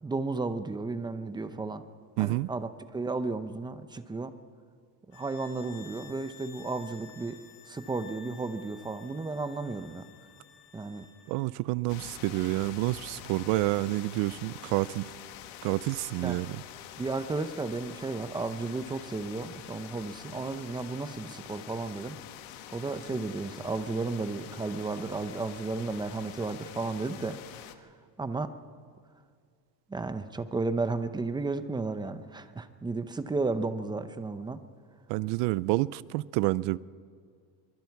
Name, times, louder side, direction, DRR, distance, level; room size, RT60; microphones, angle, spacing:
voice 1, 0.0-1.8 2.2-4.3 5.1-7.4 7.7-10.1 10.7-11.1 16.2-16.4 17.0-22.2 22.7-27.4 27.7-27.9 28.2-28.5 29.9-34.6, right 3 dB, 10° right, 0.6 m, -33 dB
voice 2, 2.2-2.5 11.3-15.1 15.6-16.6 35.1-36.8, right 19 dB, 55° right, 0.5 m, -29 dB
sound 1, 5.1-11.5, left 9 dB, 65° left, 2.6 m, -53 dB
sound 2, 11.9-27.8, left 11 dB, 90° left, 1.6 m, -46 dB
25.5 x 23.0 x 4.7 m
cardioid pair, 145°, 50 cm